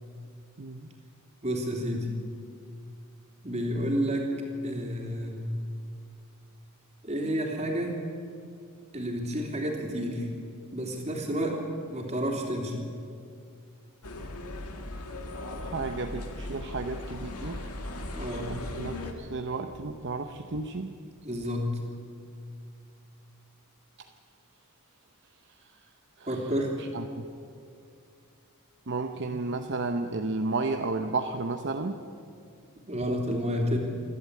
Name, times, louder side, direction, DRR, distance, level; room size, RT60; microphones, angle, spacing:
voice 1, 0.6-0.9 15.4-17.7 18.5-20.9 26.2-26.3 26.8-27.2 28.9-32.0, right 3 dB, 55° right, 5 dB, 0.9 m, -33 dB
voice 2, 1.4-2.1 3.4-4.3 4.6-5.4 7.0-7.9 8.9-10.3 10.7-11.6 11.9-12.7 18.1-18.5 21.2-21.8 26.3-26.7 32.9-33.8, equal, 30° right, 1 dB, 3.3 m, -30 dB
sound 1, 14.0-19.1, left 1 dB, 85° left, 2.1 m, -38 dB
27.5 x 12.0 x 8.5 m, 2.4 s
head